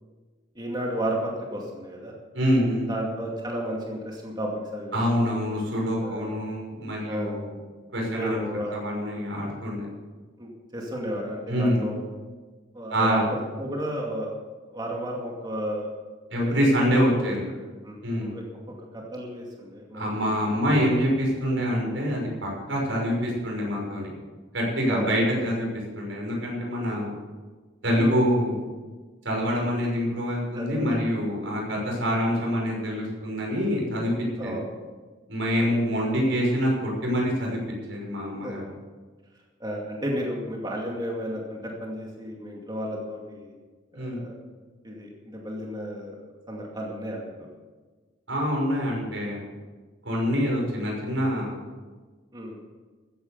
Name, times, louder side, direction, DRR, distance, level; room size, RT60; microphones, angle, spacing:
voice 1, 0.5-2.1 2.9-5.3 6.0-6.3 7.1-7.4 8.1-8.7 10.4-12.1 12.7-13.2 13.6-14.3 14.7-15.9 16.3-16.7 16.9-18.4 18.9-20.4 24.8-25.1 28.0-28.2 30.5-31.0 34.4-34.7 35.6-35.8 36.1-36.3 38.4-38.6 39.6-43.5 43.9-44.3 44.8-46.2 46.5-47.5 50.2-50.4 52.3-52.6, equal, 25° right, -1 dB, 2.3 m, -33 dB
voice 2, 2.3-2.9 4.9-7.5 7.9-8.4 8.7-9.9 11.5-11.8 12.9-13.2 16.3-17.4 18.0-18.4 19.9-24.1 24.5-25.7 25.9-27.1 27.8-28.6 29.2-34.1 34.4-34.6 35.3-37.6 37.9-38.6 43.9-44.2 48.3-49.4 50.0-51.5, equal, 90° right, -2 dB, 6.1 m, -25 dB
15.0 x 9.9 x 6.8 m, 1.3 s
head